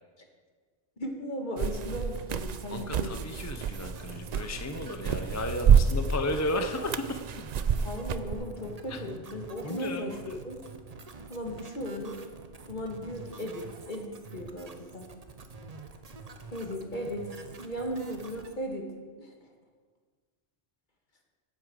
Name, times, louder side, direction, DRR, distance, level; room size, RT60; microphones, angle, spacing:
voice 1, 1.0-3.1 7.8-10.6 11.3-12.2 12.7-15.1 16.5-17.3 17.6-18.9 19.2-19.4, equal, 45° left, 2 dB, 1.8 m, -36 dB
sound 1, 1.6-8.3, right 7 dB, 55° right, 0.4 m, -28 dB
voice 2, 2.7-7.2 8.9-9.0 9.6-10.4, left 1 dB, 20° left, 5 dB, 0.5 m, -34 dB
sound 2, 3.5-18.6, right 4 dB, 35° right, 0.9 m, -47 dB
Bowed string instrument, 5.3-9.7, right 2 dB, 65° left, 4.7 m, -48 dB
10.0 x 8.1 x 7.7 m, 1.5 s
omnidirectional pair, 1.2 m